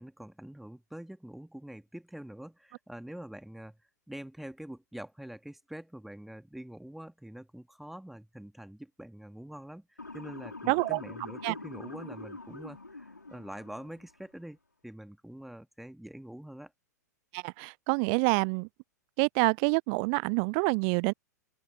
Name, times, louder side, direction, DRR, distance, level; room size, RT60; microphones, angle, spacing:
voice 1, 0.0-3.8 4.1-14.6 14.8-16.7, right 1 dB, ahead, 2.1 m, -45 dB
Motor vehicle (road) / Siren, 10.0-14.1, left 3 dB, 85° left, 5.8 m, -44 dB
voice 2, 10.7-11.0 11.4-11.5 17.3-18.7 19.2-21.1, right 40 dB or more, 35° right, 0.3 m, -27 dB
open air
figure-of-eight pair, 100°, 10 cm